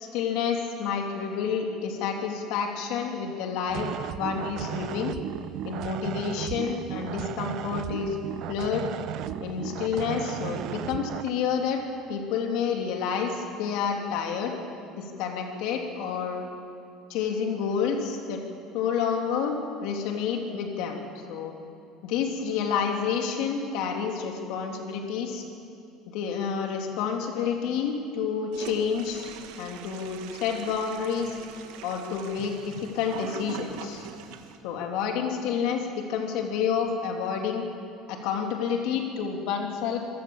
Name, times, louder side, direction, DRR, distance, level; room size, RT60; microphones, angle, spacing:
voice 1, 0.0-3.9 4.2-5.1 5.6-8.2 8.5-8.9 9.4-11.8 12.1-14.5 15.0-16.4 17.1-18.4 18.7-21.0 21.3-21.5 22.0-25.4 26.1-29.3 29.6-31.4 31.8-34.0 34.6-37.6 38.1-40.0, left 6 dB, 70° left, 2 dB, 3.0 m, -29 dB
sound 1, 3.7-11.3, right 12 dB, 60° right, 0.7 m, -35 dB
Toilet flush, 28.5-34.6, right 8 dB, 80° right, 1.7 m, -42 dB
26.5 x 15.5 x 7.2 m, 2.6 s
supercardioid pair, 110°, 0 cm